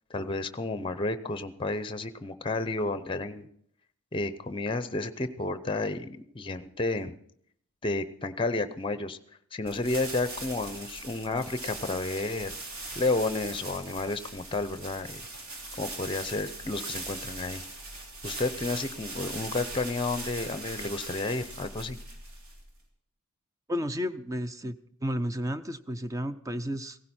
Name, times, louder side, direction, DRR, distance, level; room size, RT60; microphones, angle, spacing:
voice 1, 0.1-3.5 4.1-7.1 7.8-9.2 9.5-12.5 13.0-15.2 15.8-17.6 18.2-22.0, left 2 dB, 25° left, 12 dB, 0.7 m, -31 dB
sound 1, 9.6-22.8, right 2 dB, 70° right, 3.0 m, -40 dB
voice 2, 23.7-27.0, equal, 15° right, 11 dB, 0.5 m, -32 dB
17.0 x 15.5 x 4.3 m, 0.66 s
head